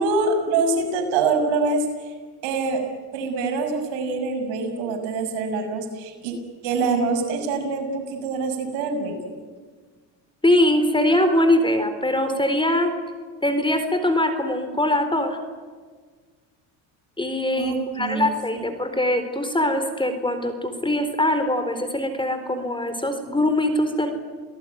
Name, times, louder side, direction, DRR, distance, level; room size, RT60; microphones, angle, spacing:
voice 1, 0.0-2.1 2.4-2.8 3.1-6.3 6.6-9.3 17.6-18.7, right 3 dB, 75° right, 4 dB, 6.5 m, -25 dB
voice 2, 10.4-12.9 13.4-15.4 17.2-24.1, left 1 dB, 10° left, 8 dB, 4.1 m, -22 dB
29.0 x 18.5 x 9.4 m, 1.5 s
supercardioid pair, 90°, 47 cm